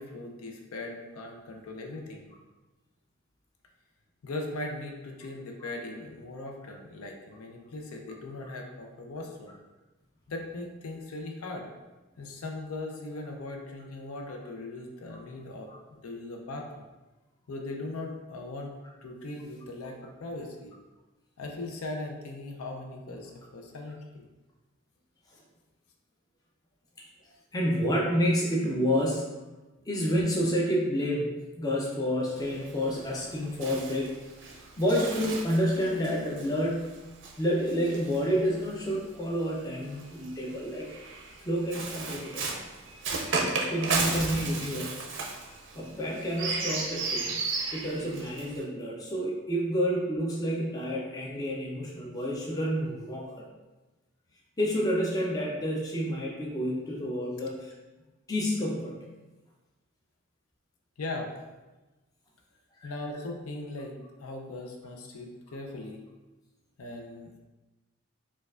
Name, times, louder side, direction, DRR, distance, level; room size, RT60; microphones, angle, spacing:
voice 1, 0.0-2.3 4.2-9.5 10.3-11.7 12.2-16.7 17.5-18.7 19.0-20.7 21.4-24.3 61.0-61.3 62.8-66.0 66.8-67.4, left 2 dB, 85° left, 2 dB, 0.5 m, -39 dB
voice 2, 27.5-29.3 29.9-34.1 34.5-37.0 37.4-40.9 41.5-42.5 43.7-44.9 45.7-47.5 47.7-53.5 54.6-57.7 58.3-59.0 62.8-62.9, equal, 15° left, -3 dB, 0.4 m, -29 dB
Bird, 32.4-38.9 39.8-48.6, right 4 dB, 55° right, 0.5 m, -35 dB
4.4 x 2.3 x 2.4 m, 1.1 s
head